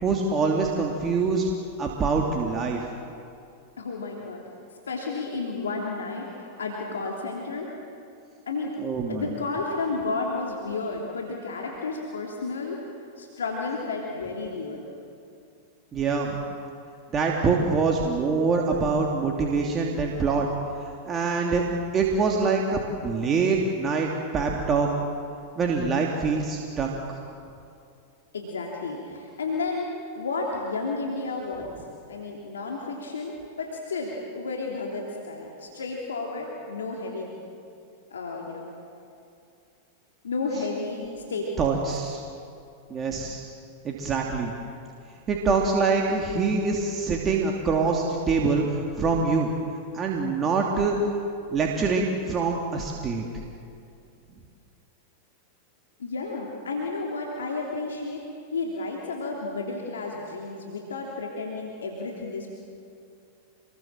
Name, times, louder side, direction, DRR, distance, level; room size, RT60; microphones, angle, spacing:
voice 1, 0.0-1.5 1.8-2.8 8.8-9.3 15.9-16.4 17.1-20.5 21.1-21.6 21.9-24.9 25.6-27.2 41.6-42.2 42.9-43.5 43.8-44.5 45.3-49.5 49.9-51.0 51.5-53.2, right 4 dB, 30° right, 0 dB, 2.9 m, -25 dB
voice 2, 3.8-4.4 4.9-7.7 8.5-8.7 9.1-12.8 13.2-14.9 28.3-31.7 32.1-37.3 38.1-38.7 40.2-41.7 56.0-58.2 58.5-62.5, left 3 dB, 80° left, -1 dB, 3.2 m, -32 dB
27.5 x 21.5 x 7.6 m, 2.5 s
hypercardioid pair, 100°, 0 cm